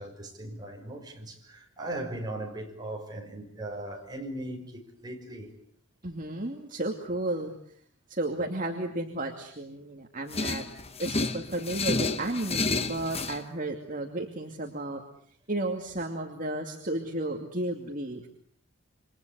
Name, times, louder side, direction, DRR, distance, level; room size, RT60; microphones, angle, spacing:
voice 1, 0.0-5.5, right 1 dB, 20° right, 5.8 m, -38 dB
voice 2, 6.0-7.8 8.1-10.7 11.0-15.0 15.5-18.3, right 1 dB, 35° right, 2.6 m, -33 dB
sound 1, 10.3-13.4, left 3 dB, 25° left, 1.3 m, -30 dB
28.5 x 25.5 x 8.2 m
head